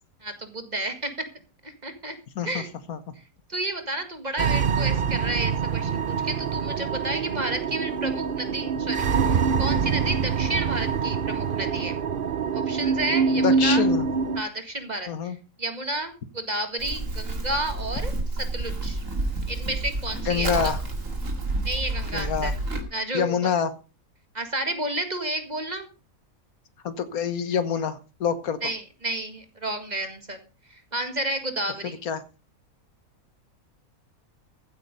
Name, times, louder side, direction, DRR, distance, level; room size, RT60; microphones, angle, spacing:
voice 1, 0.2-1.1 1.6-2.2 2.4-2.7 3.5-11.9 12.5-13.9 14.3-18.1 18.5-19.0 19.5-20.7 21.6-22.5 22.9-23.5 24.3-25.9 28.6-30.4 30.7-32.0, right 1 dB, 30° right, 7 dB, 2.0 m, -31 dB
sound 1, 4.4-14.4, right 5 dB, 45° right, 0.8 m, -25 dB
voice 2, 13.4-14.1 15.1-15.4 20.3-20.8 22.1-22.5 23.1-23.7 26.8-28.6 32.0-32.2, left 7 dB, 80° left, 13 dB, 1.6 m, -26 dB
Livestock farm animals working animals, 16.8-22.8, right 2 dB, 65° right, 2.7 m, -29 dB
15.0 x 8.6 x 5.2 m, 0.33 s
omnidirectional pair, 1.5 m